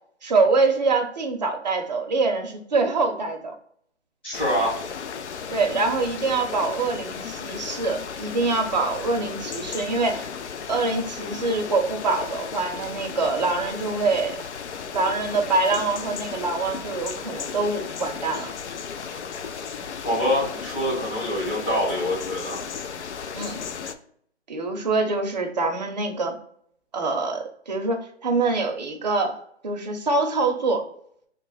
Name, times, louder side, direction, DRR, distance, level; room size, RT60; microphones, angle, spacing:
voice 1, 0.2-3.5 5.5-10.3 10.7-14.4 14.9-18.5 23.3-23.6 24.5-26.3 26.9-30.8, right 3 dB, 40° right, 3 dB, 0.6 m, -25 dB
voice 2, 4.2-4.8 20.0-22.6, equal, 10° left, -8 dB, 0.6 m, -25 dB
sound 1, 4.3-23.9, left 6 dB, 70° left, 0.5 m, -35 dB
3.1 x 2.1 x 3.9 m, 0.65 s
figure-of-eight pair, 155°, 35 cm